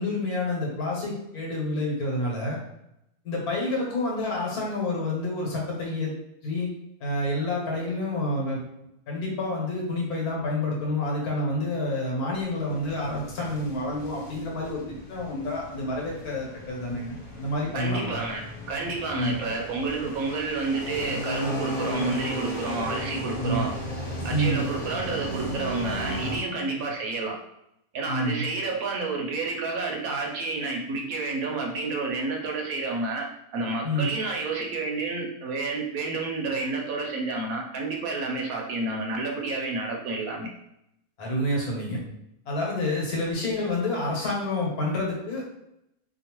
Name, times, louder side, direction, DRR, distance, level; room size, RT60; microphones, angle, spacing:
voice 1, 0.0-2.6 3.2-6.1 6.4-6.7 7.0-8.6 9.1-18.2 19.1-19.4 23.4-23.7 24.2-24.6 28.1-28.4 33.8-34.1 41.2-42.0 42.5-45.4, left 1 dB, 85° left, -2 dB, 1.5 m, -28 dB
sound 1, 12.7-26.4, equal, 50° left, 0.3 m, -35 dB
voice 2, 17.7-23.7 24.2-27.4 27.9-40.5, right 3 dB, 75° right, 0 dB, 1.0 m, -30 dB
2.9 x 2.4 x 2.9 m, 0.81 s
omnidirectional pair, 1.6 m